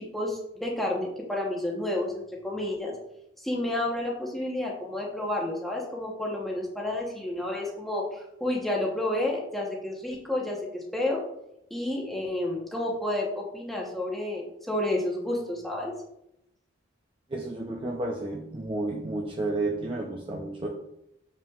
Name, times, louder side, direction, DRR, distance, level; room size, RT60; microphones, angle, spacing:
voice 1, 0.0-2.9 3.4-11.2 11.7-15.9, left 1 dB, ahead, -3 dB, 1.0 m, -30 dB
voice 2, 17.3-20.7, right 2 dB, 25° right, 0 dB, 0.5 m, -31 dB
7.0 x 5.6 x 2.4 m, 0.82 s
head